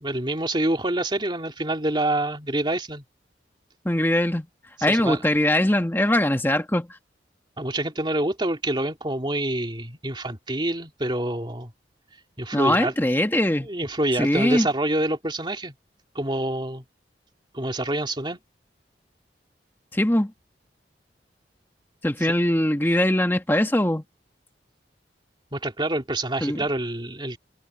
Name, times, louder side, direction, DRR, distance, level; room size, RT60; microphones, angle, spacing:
voice 1, 0.0-3.0 4.9-5.2 7.6-11.7 12.4-12.9 13.6-15.7 16.1-16.8 17.5-18.4 25.5-27.4, right 1 dB, 25° right, 2.8 m, -26 dB
voice 2, 3.8-4.5 4.8-7.0 12.5-13.7 14.2-14.7 19.9-20.3 22.0-24.0 26.4-26.6, left 1 dB, 10° left, 1.5 m, -21 dB
head